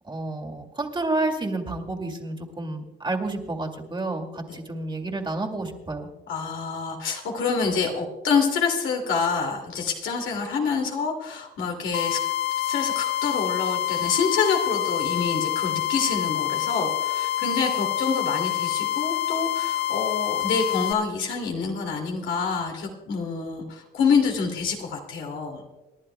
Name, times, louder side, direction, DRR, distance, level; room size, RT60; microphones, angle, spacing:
voice 1, 0.1-6.1, right 2 dB, 25° right, 2 dB, 2.3 m, -30 dB
voice 2, 6.3-12.2 12.6-25.6, left 5 dB, 75° left, 2 dB, 2.5 m, -27 dB
sound 1, 11.9-20.9, left 13 dB, 60° left, 0.5 m, -27 dB
28.5 x 11.0 x 2.2 m, 1.1 s
cardioid pair, 90°, 20 cm